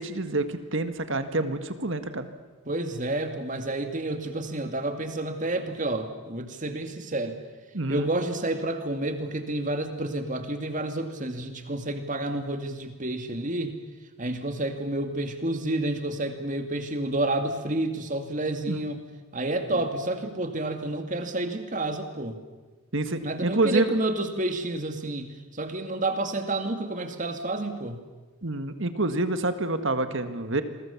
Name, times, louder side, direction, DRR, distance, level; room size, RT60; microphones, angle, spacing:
voice 1, 0.0-2.3 7.7-8.1 18.7-18.8 22.9-23.9 28.4-30.6, right 2 dB, 60° right, 9 dB, 1.7 m, -27 dB
voice 2, 2.7-7.4 7.9-13.8 14.2-19.0 19.3-22.4 23.2-25.3 25.5-28.0, right 2 dB, 35° right, 7 dB, 2.4 m, -30 dB
28.5 x 22.0 x 7.2 m, 1.3 s
head